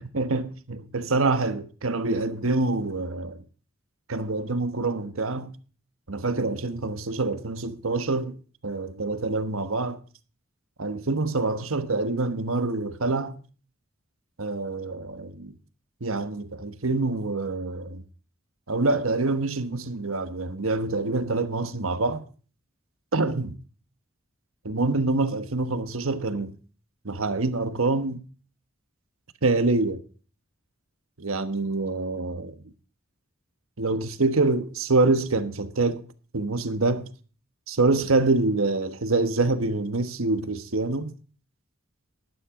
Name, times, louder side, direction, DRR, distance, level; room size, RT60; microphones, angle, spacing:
voice 1, 0.0-3.3 4.1-5.5 6.1-8.4 8.6-10.0 10.8-13.4 14.4-15.5 16.0-18.0 18.7-22.2 23.1-23.6 24.6-26.5 27.0-28.2 29.4-30.0 31.2-32.5 33.8-36.1 36.3-37.1 37.7-41.1, right 3 dB, 75° right, 1.2 m, -26 dB
12.0 x 12.0 x 3.7 m
head